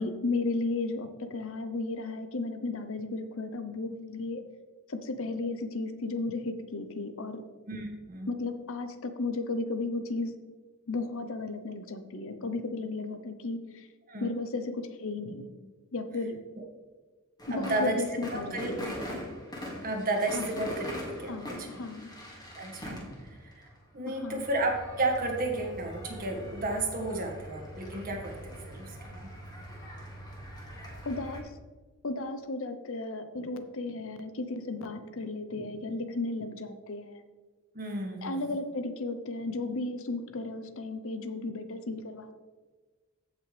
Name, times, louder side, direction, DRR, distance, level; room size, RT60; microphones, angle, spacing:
voice 1, 0.0-4.4 4.9-7.4 8.3-10.3 10.9-13.9 14.2-15.5 15.9-16.4 17.5-18.9 20.3-20.5 21.3-22.1 24.1-24.5 31.0-31.4 32.0-37.2 38.2-42.3, left 3 dB, 65° left, 9 dB, 0.8 m, -34 dB
voice 2, 7.7-8.3 14.1-14.4 17.5-19.2 19.8-21.8 22.5-23.7 23.9-29.3 37.7-38.6, right 2 dB, 40° right, 2 dB, 1.7 m, -33 dB
sound 1, 17.4-31.4, equal, 20° left, 2.1 m, -42 dB
15.0 x 6.0 x 3.4 m, 1.3 s
head